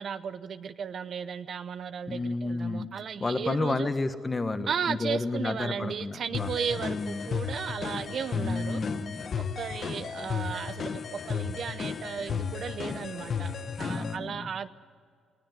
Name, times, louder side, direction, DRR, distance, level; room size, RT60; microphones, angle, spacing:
voice 1, 0.0-3.9 4.7-8.8 9.4-13.5 13.8-14.7, right 7 dB, 55° right, 13 dB, 0.8 m, -35 dB
voice 2, 2.1-2.9 3.2-6.5 6.8-7.3 8.3-9.3 13.8-14.5, left 3 dB, 25° left, 9 dB, 1.4 m, -31 dB
sound 1, 6.3-14.2, left 6 dB, 50° left, 1.1 m, -34 dB
20.0 x 16.5 x 9.7 m, 2.1 s
cardioid pair, 90°, 0 cm